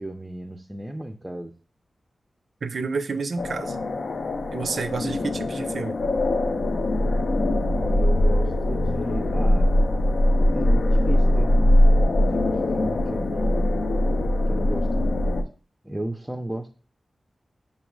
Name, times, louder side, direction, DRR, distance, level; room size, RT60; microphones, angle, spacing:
voice 1, 0.0-1.5 7.8-9.8 10.5-11.8 12.1-13.8 14.5-15.3 15.8-16.7, right 1 dB, 10° right, 1 dB, 0.4 m, -34 dB
voice 2, 2.6-3.8 4.5-6.0, right 4 dB, 70° right, 11 dB, 0.4 m, -29 dB
sound 1, 3.4-15.4, left 1 dB, 70° left, 0.4 m, -21 dB
5.4 x 2.1 x 4.5 m, 0.36 s
wide cardioid pair, 105°, 0 cm